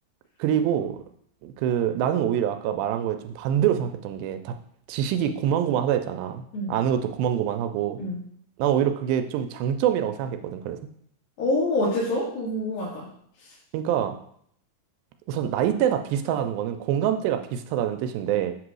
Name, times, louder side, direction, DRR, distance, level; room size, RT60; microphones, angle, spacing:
voice 1, 0.4-1.0 1.4-4.5 4.9-8.0 8.6-10.8 13.7-14.2 15.3-18.5, right 10 dB, 90° right, 8 dB, 2.4 m, -25 dB
voice 2, 11.4-13.1, left 1 dB, 80° left, -8 dB, 3.5 m, -26 dB
7.8 x 2.9 x 6.1 m, 0.65 s
omnidirectional pair, 4.1 m